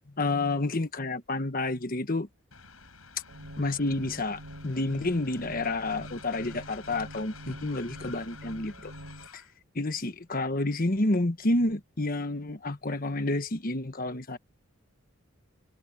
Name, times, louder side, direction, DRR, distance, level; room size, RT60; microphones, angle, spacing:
voice 1, 0.2-2.3 3.6-8.9 9.3-9.4 9.7-14.4, left 2 dB, 40° left, 1.3 m, -29 dB
Train, 2.5-9.6, left 6 dB, 75° left, 7.1 m, -51 dB
sound 1, 3.3-9.3, right 1 dB, 90° right, 4.8 m, -46 dB
head